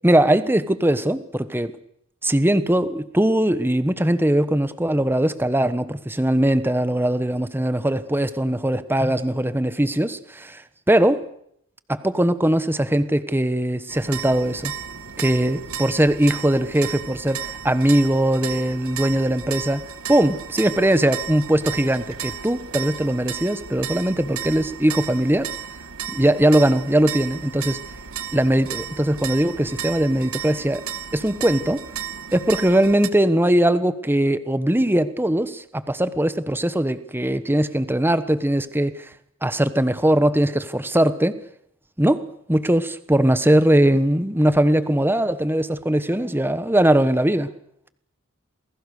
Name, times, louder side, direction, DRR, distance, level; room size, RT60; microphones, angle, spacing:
voice 1, 0.0-1.8 2.2-11.3 11.9-14.7 15.2-25.5 26.1-27.8 28.3-30.8 31.1-31.8 32.3-39.1 39.4-41.4 42.0-47.5, right 1 dB, 10° right, 13 dB, 1.2 m, -20 dB
sound 1, 13.9-33.1, right 8 dB, 80° right, 1.9 m, -34 dB
29.0 x 21.0 x 6.6 m, 0.70 s
head